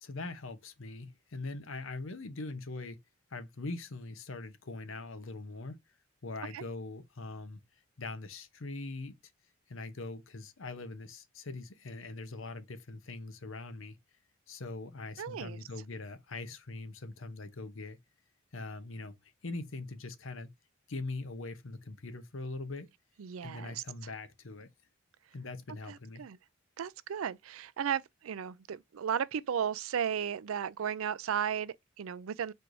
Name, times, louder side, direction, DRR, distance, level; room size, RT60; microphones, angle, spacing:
voice 1, 0.0-3.0 3.3-5.8 6.2-7.6 8.0-9.1 9.7-14.0 14.5-18.0 18.5-20.5 20.9-22.9 23.4-24.7 25.3-26.3, left 3 dB, 75° left, 0.8 m, -42 dB
voice 2, 15.2-15.6 23.2-23.8 25.9-26.4 26.8-32.5, right 8 dB, 80° right, 0.4 m, -35 dB
4.4 x 2.6 x 4.6 m
head